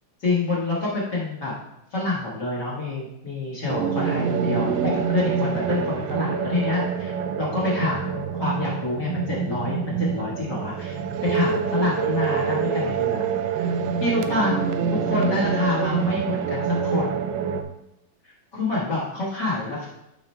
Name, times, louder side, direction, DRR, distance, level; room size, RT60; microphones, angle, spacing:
voice 1, 0.2-1.5 1.9-10.9 11.2-13.2 13.5-13.7 14.0-14.6 14.9-17.1 18.5-19.9, left 2 dB, 85° left, -5 dB, 0.9 m, -27 dB
sound 1, 3.7-17.6, right 6 dB, 80° right, 2.0 m, -26 dB
12.5 x 4.3 x 3.3 m, 0.85 s
omnidirectional pair, 4.4 m